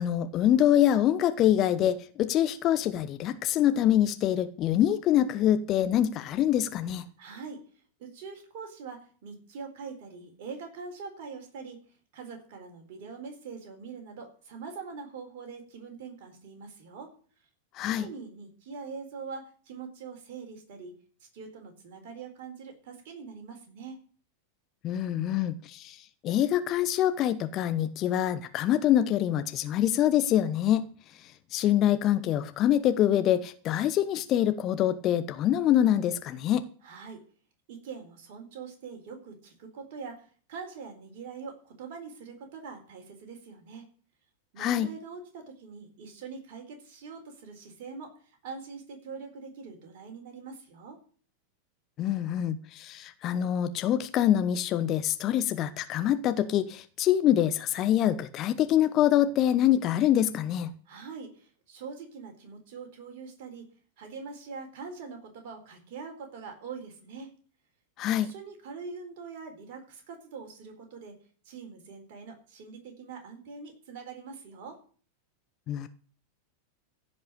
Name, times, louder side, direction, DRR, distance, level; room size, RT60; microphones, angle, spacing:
voice 1, 0.0-7.0 17.7-18.1 24.8-26.0 26.2-30.9 31.5-36.6 44.6-44.9 52.0-60.7 68.0-68.3 75.7-75.9, left 11 dB, 35° left, 0.9 m, -25 dB
voice 2, 7.2-7.6 8.0-11.8 12.1-17.1 17.8-21.0 21.3-24.0 36.8-37.2 37.7-43.9 44.5-51.0 60.9-63.7 64.0-67.3 68.2-71.2 71.4-74.8, right 5 dB, 50° right, 4.2 m, -43 dB
15.5 x 5.4 x 8.5 m
figure-of-eight pair, 90°, 0 cm